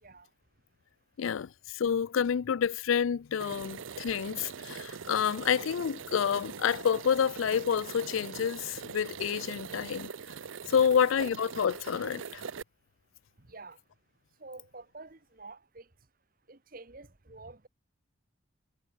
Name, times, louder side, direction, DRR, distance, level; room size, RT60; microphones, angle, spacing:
voice 1, 0.0-1.2 9.8-9.9 10.6-11.1 12.8-12.9 13.3-16.1 16.4-17.7, right 3 dB, 45° right, 1.4 m, -51 dB
voice 2, 1.2-10.1 10.7-12.4, left 7 dB, 85° left, 0.4 m, -28 dB
sound 1, 3.4-12.6, right 6 dB, 80° right, 0.6 m, -42 dB
head